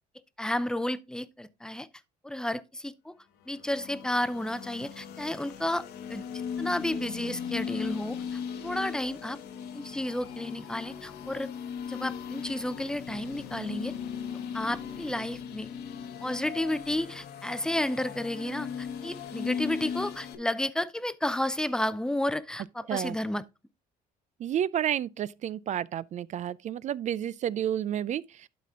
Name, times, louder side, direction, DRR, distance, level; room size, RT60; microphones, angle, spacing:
voice 1, 0.4-1.9 2.2-3.1 3.5-6.2 6.6-9.4 9.7-11.5 11.9-13.9 14.5-15.7 16.2-23.4, left 1 dB, 5° left, 0.6 m, -32 dB
sound 1, 3.4-20.4, left 7 dB, 75° left, 1.2 m, -38 dB
voice 2, 24.4-28.5, right 10 dB, 45° right, 0.4 m, -31 dB
11.5 x 4.2 x 3.6 m
cardioid pair, 110°, 17 cm